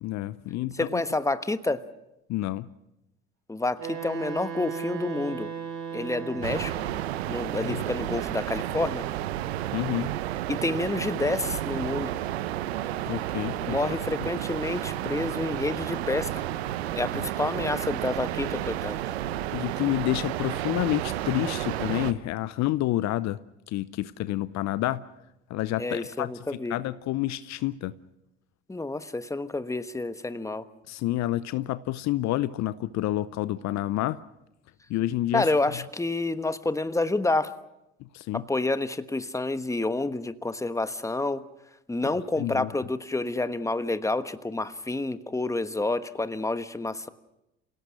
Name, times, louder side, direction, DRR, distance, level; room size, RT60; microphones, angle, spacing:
voice 1, 0.0-1.0 2.3-2.7 6.4-6.6 7.6-7.8 9.7-10.1 13.1-13.8 19.5-23.4 23.7-25.0 25.5-26.3 26.7-27.9 30.9-34.2 34.9-35.5 38.1-38.4 42.4-42.7, left 15 dB, 60° left, 16 dB, 0.7 m, -29 dB
voice 2, 0.7-1.8 3.5-5.5 5.9-6.7 7.3-9.1 10.5-12.1 13.6-16.4 16.9-19.0 25.8-26.8 28.7-30.6 35.3-37.5 38.3-41.4 41.9-47.1, left 2 dB, 10° left, 12 dB, 1.2 m, -29 dB
Wind instrument woodwind instrument, 3.8-7.3, right 6 dB, 55° right, 5.8 m, -36 dB
sound 1, 6.4-22.1, right 13 dB, 85° right, 0.8 m, -31 dB
27.5 x 17.5 x 6.4 m, 0.90 s
hypercardioid pair, 55°, 31 cm